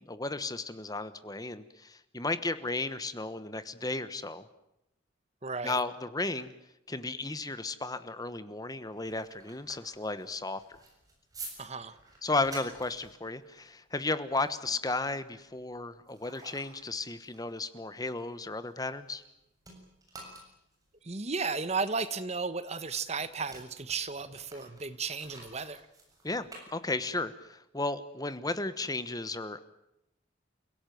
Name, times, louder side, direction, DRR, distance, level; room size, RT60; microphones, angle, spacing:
voice 1, 0.0-4.5 5.6-6.5 6.9-10.6 12.2-19.2 26.2-29.6, left 3 dB, 20° left, 12 dB, 1.2 m, -34 dB
voice 2, 5.4-5.8 11.6-11.9 21.0-25.8, right 4 dB, 35° right, 13 dB, 1.2 m, -34 dB
sound 1, 8.8-19.3 19.6-27.3, right 3 dB, 20° right, 7.4 m, -51 dB
29.5 x 17.0 x 9.4 m, 0.87 s
head